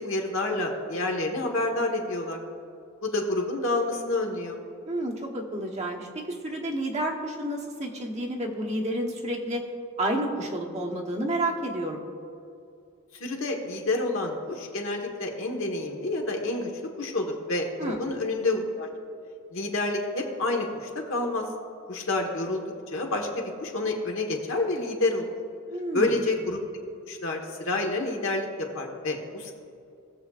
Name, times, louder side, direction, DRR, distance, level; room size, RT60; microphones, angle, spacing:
voice 1, 0.0-2.4 3.0-4.6 13.2-16.7 17.0-18.9 19.5-21.4 21.9-25.3 25.9-26.6 27.0-28.5 28.7-29.5, left 2 dB, 65° left, 1 dB, 1.4 m, -28 dB
voice 2, 4.9-9.6 10.0-12.0 17.8-18.0 25.7-26.1, right 1 dB, 30° right, 0 dB, 1.0 m, -30 dB
19.0 x 7.0 x 2.5 m, 2.5 s
head